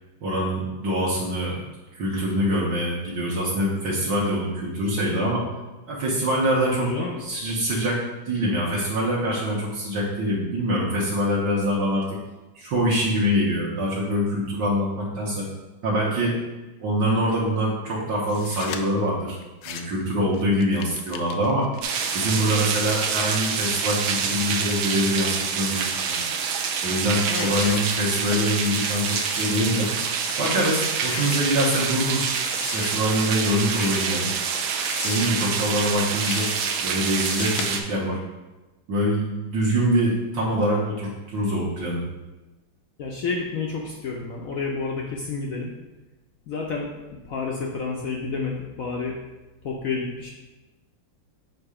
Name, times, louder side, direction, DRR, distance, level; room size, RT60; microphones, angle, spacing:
voice 1, 0.2-1.6 1.9-5.4 5.9-6.9 7.2-12.2 12.6-15.5 15.8-16.4 16.8-21.7 22.1-26.2 26.8-29.9 30.4-32.3 32.7-34.3 35.0-36.5 36.8-38.2 38.9-42.0, equal, 65° right, -6 dB, 1.7 m, -24 dB
voice 2, 6.7-7.2 27.3-27.7 43.0-45.7 46.5-46.9 47.2-49.1 49.6-50.3, left 4 dB, 70° left, -1 dB, 0.8 m, -30 dB
sound 1, 18.3-18.8 19.4-20.0 20.3-24.7 25.3-26.5 26.9-27.0 27.3-28.6 28.8-29.5 29.8-29.9 30.2-30.4 30.8-31.7 32.4-32.9 33.6-34.3 34.8-35.5 36.1-36.7 37.1-37.6, left 8 dB, 85° left, 1.3 m, -38 dB
sound 2, 21.8-37.8, right 6 dB, 85° right, 1.4 m, -27 dB
7.7 x 2.7 x 4.8 m, 1.1 s
omnidirectional pair, 2.1 m